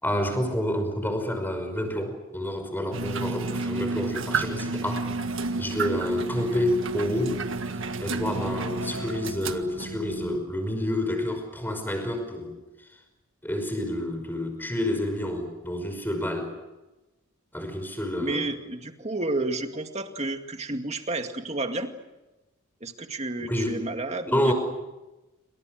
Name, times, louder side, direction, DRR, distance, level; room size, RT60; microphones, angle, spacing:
voice 1, 0.0-5.1 5.6-7.4 8.0-12.5 13.4-16.5 17.5-18.5 23.4-23.8 24.3-24.5, left 1 dB, 10° left, 6 dB, 5.4 m, -28 dB
sound 1, 2.9-10.4, right 3 dB, 65° right, 1.7 m, -31 dB
voice 2, 18.2-21.9 22.8-24.5, right 2 dB, 30° right, 5 dB, 2.2 m, -31 dB
28.5 x 26.0 x 6.5 m, 1.0 s
head